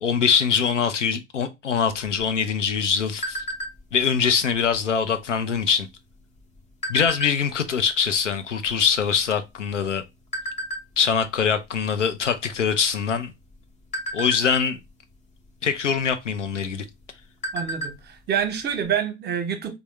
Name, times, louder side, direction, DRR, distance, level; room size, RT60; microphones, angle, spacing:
voice 1, 0.0-3.4 3.9-5.9 6.9-10.0 11.0-13.3 14.1-14.8 15.6-16.8, left 6 dB, 85° left, 0.5 m, -23 dB
sound 1, 2.0-4.0 4.5-4.8 5.0-5.4 6.1-7.7 8.3-8.4 8.6-9.8 10.3-10.8 11.3-11.6 11.9-12.1 12.6-13.1 13.5-14.9 16.0-16.1 16.6-16.7 17.0-18.1 18.4-18.5 18.8-18.9, right 1 dB, 20° left, 0.7 m, -32 dB
voice 2, 17.5-19.8, right 8 dB, 30° right, 0.8 m, -27 dB
3.5 x 2.0 x 3.1 m
figure-of-eight pair, 70°, 36 cm